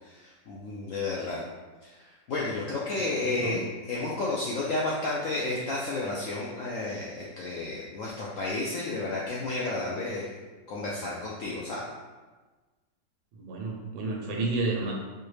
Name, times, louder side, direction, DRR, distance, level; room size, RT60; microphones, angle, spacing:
voice 1, 0.0-1.4 1.8-3.6 3.9-10.3 10.7-11.8, left 2 dB, 75° left, -5 dB, 0.7 m, -32 dB
voice 2, 3.1-3.6 13.3-14.9, right 3 dB, 85° right, -1 dB, 1.4 m, -31 dB
4.5 x 2.2 x 3.1 m, 1.3 s
omnidirectional pair, 1.9 m